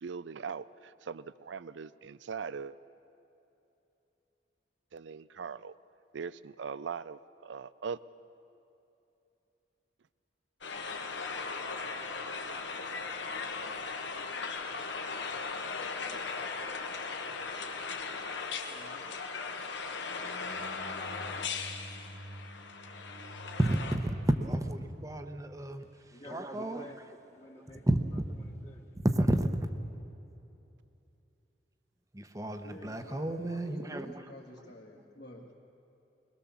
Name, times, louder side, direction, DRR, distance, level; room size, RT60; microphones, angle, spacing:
voice 1, 0.0-2.8 4.9-5.7 6.1-8.0, right 6 dB, 85° right, 17 dB, 0.5 m, -40 dB
sound 1, 10.6-24.0, left 4 dB, 80° left, 1.6 m, -38 dB
voice 2, 18.7-19.0 32.6-35.5, left 1 dB, 60° left, -4 dB, 1.9 m, -49 dB
sound 2, 20.1-26.1, right 1 dB, 45° right, 0.8 m, -49 dB
voice 3, 23.6-25.8 26.3-26.9 27.9-28.0 29.0-29.5 32.1-34.1, right 1 dB, 20° right, 7 dB, 0.8 m, -30 dB
voice 4, 25.8-27.0 27.3-27.8 28.1-28.9, left 1 dB, 35° left, -2 dB, 1.5 m, -53 dB
22.0 x 21.5 x 7.1 m, 2.9 s
head